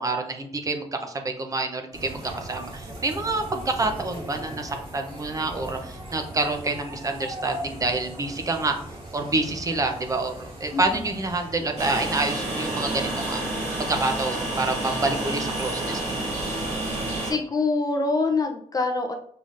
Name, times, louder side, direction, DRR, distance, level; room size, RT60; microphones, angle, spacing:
voice 1, 0.0-8.8 9.1-13.4 13.9-16.3, right 2 dB, 30° right, 5 dB, 0.6 m, -27 dB
sound 1, 1.9-11.8, right 1 dB, 45° right, 2.0 m, -39 dB
voice 2, 10.7-11.0 17.2-19.1, left 3 dB, 30° left, 4 dB, 0.5 m, -25 dB
Train, 11.8-17.3, right 2 dB, 65° right, 1.9 m, -29 dB
5.7 x 3.6 x 2.5 m, 0.63 s
wide cardioid pair, 155°, 12 cm